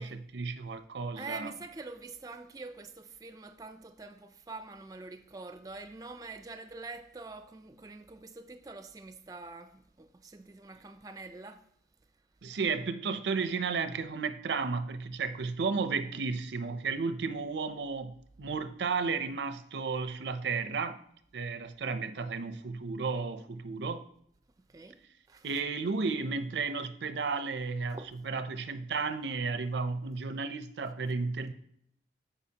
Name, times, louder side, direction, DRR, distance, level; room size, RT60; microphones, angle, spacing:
voice 1, 0.0-1.5 12.4-21.0 21.3-24.0 25.4-31.5, right 4 dB, 85° right, 0.5 m, -33 dB
voice 2, 1.2-11.6 24.7-25.0 25.3-25.5 27.9-28.1, right 3 dB, 20° right, 0.4 m, -45 dB
13.5 x 4.8 x 2.8 m
head